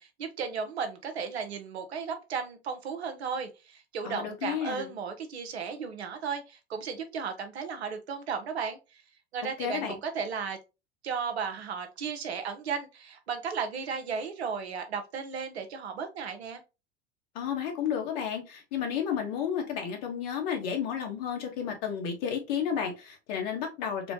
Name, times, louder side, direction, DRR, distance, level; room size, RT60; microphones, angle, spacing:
voice 1, 0.0-8.8 9.3-10.6 11.0-16.6, right 6 dB, 85° right, 7 dB, 0.8 m, -35 dB
voice 2, 4.0-4.9 9.6-9.9 17.3-24.1, left 8 dB, 60° left, 3 dB, 1.3 m, -32 dB
4.3 x 2.1 x 2.8 m, 0.27 s
hypercardioid pair, 85°, 31 cm